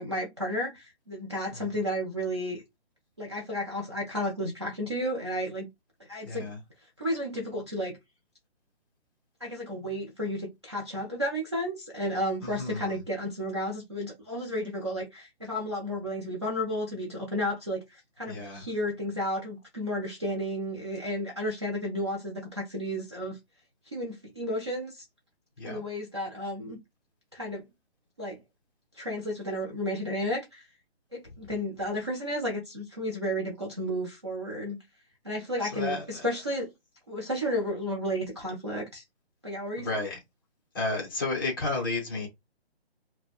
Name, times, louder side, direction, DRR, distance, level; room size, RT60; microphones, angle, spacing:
voice 1, 0.0-2.6 3.2-5.7 6.0-6.5 7.0-8.0 9.4-23.4 23.9-25.0 25.6-26.8 27.3-27.6 28.2-28.4 28.9-30.7 31.1-34.8 35.2-36.7 37.1-39.0 39.4-40.0, equal, 25° right, 0.4 m, -32 dB
voice 2, 6.2-6.6 12.4-13.0 18.3-18.6 25.6-25.8 35.6-36.2 39.8-40.2 40.7-42.3, left 3 dB, 20° left, 0.7 m, -32 dB
2.8 x 2.1 x 2.3 m
hypercardioid pair, 160°, 32 cm